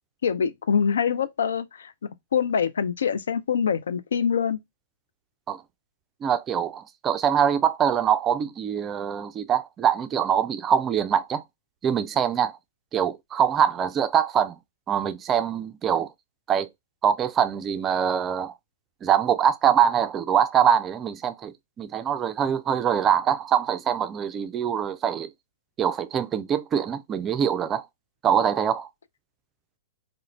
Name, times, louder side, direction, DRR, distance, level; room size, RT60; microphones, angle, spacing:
voice 1, 0.2-4.6, left 7 dB, 70° left, 0.3 m, -25 dB
voice 2, 6.2-11.4 11.8-12.6 12.9-14.6 14.9-16.1 16.5-16.7 17.0-18.5 19.0-25.3 25.8-27.9 28.2-28.9, right 8 dB, 25° right, 0.3 m, -23 dB
2.4 x 2.1 x 3.0 m
figure-of-eight pair, 110°, 0 cm